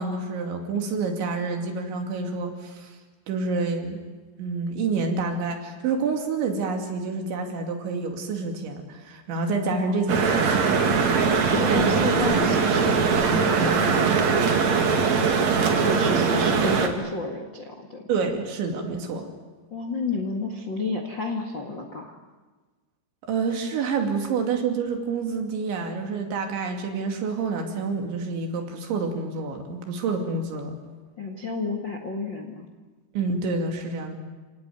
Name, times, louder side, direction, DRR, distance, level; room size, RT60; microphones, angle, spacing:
voice 1, 0.0-3.0 3.3-4.0 4.4-10.8 11.7-12.0 12.2-12.4 12.9-13.3 18.1-19.3 23.2-30.7 33.1-34.2, right 4 dB, 65° right, 3 dB, 4.7 m, -28 dB
sound 1, 10.1-16.9, right 5 dB, 45° right, 2.5 m, -21 dB
voice 2, 11.5-14.5 15.7-18.0 19.7-22.1 31.2-32.7, left 3 dB, 80° left, 3 dB, 1.0 m, -31 dB
29.5 x 18.5 x 9.4 m, 1.3 s
omnidirectional pair, 5.8 m